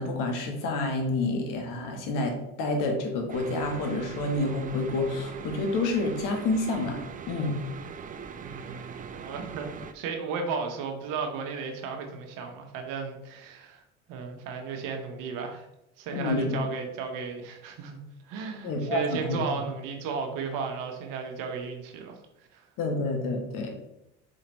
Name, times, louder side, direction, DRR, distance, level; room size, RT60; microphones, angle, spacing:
voice 1, 0.0-7.0 7.3-7.6 16.1-16.6 18.6-19.4 22.8-23.8, left 2 dB, 60° left, 3 dB, 1.3 m, -28 dB
sound 1, 3.3-9.9, right 6 dB, 25° right, 0.4 m, -41 dB
voice 2, 8.4-13.8 14.1-15.7 16.0-22.1 22.5-22.7, right 5 dB, 65° right, 3 dB, 1.1 m, -34 dB
4.4 x 3.9 x 3.0 m, 0.87 s
hypercardioid pair, 70°, 36 cm